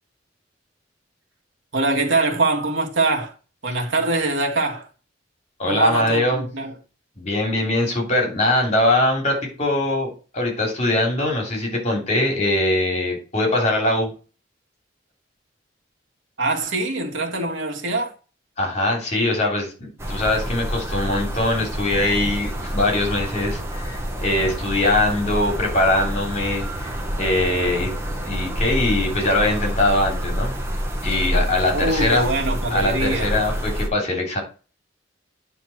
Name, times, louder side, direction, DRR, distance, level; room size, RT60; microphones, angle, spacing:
voice 1, 1.7-3.3 3.6-4.9 5.7-6.7 16.4-18.1 31.7-33.3, right 2 dB, 90° right, 2.0 m, -23 dB
voice 2, 5.6-6.4 7.2-14.1 18.6-27.9 28.2-30.5 31.0-32.2 32.7-34.4, left 1 dB, 40° left, 3.2 m, -22 dB
sound 1, 20.0-33.9, equal, 15° right, 1.3 m, -27 dB
9.3 x 3.7 x 6.0 m
head